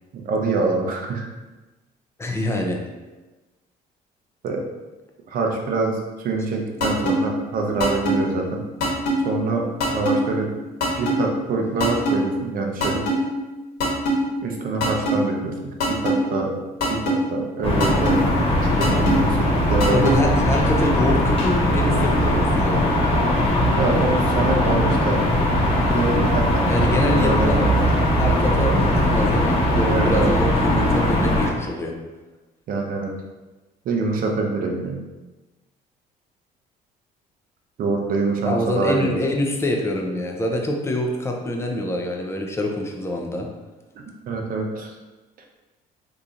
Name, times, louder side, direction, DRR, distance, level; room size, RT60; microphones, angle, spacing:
voice 1, 0.1-1.3 4.4-4.6 5.3-6.0 6.2-8.6 9.2-10.5 11.0-13.0 14.4-16.6 16.8-18.2 18.6-20.1 23.8-25.2 25.9-26.7 27.0-27.8 29.9-30.3 32.7-33.1 33.8-35.0 37.8-39.2 44.3-44.9, right 3 dB, 55° right, 2 dB, 0.7 m, -25 dB
voice 2, 2.2-2.8 19.9-23.0 26.7-27.7 28.2-32.0 38.4-43.5, left 1 dB, 15° left, 1 dB, 0.5 m, -25 dB
sound 1, 6.8-7.1 7.8-8.2 8.8-9.1 9.8-10.2 10.8-11.2 11.8-12.2 12.8-13.1 13.8-14.2 14.8-15.1 15.8-16.2 16.8-17.2 17.8-18.2 18.8-19.1 19.8-20.2, right 1 dB, 70° left, 1.2 m, -21 dB
sound 2, 17.6-31.5, left 1 dB, 35° left, 0.9 m, -20 dB
3.8 x 2.9 x 2.5 m, 1.2 s
cardioid pair, 110°, 17 cm